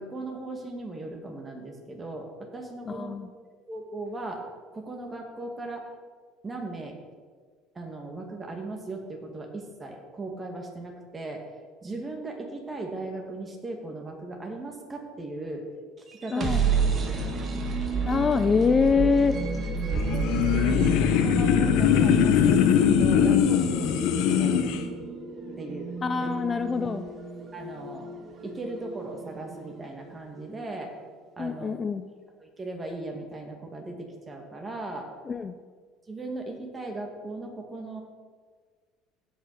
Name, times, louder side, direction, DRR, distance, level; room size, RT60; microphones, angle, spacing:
voice 1, 0.0-3.1 3.7-4.4 4.7-5.9 6.4-7.0 7.7-11.4 11.8-15.6 16.1-16.6 17.1-17.3 20.1-24.9 25.6-25.9 26.2-26.3 27.5-28.1 28.4-30.9 31.4-31.7 32.4-35.1 36.1-38.0, right 2 dB, 25° right, 2 dB, 2.4 m, -37 dB
voice 2, 2.9-3.3 16.3-16.6 18.0-19.4 26.0-27.1 31.4-32.0 35.3-35.5, left 5 dB, 30° left, 10 dB, 0.5 m, -24 dB
sound 1, 16.1-30.0, right 3 dB, 40° right, 1.6 m, -31 dB
sound 2, 19.9-24.8, left 8 dB, 75° left, 1.0 m, -22 dB
16.5 x 5.6 x 5.0 m, 1.5 s
supercardioid pair, 100°, 0 cm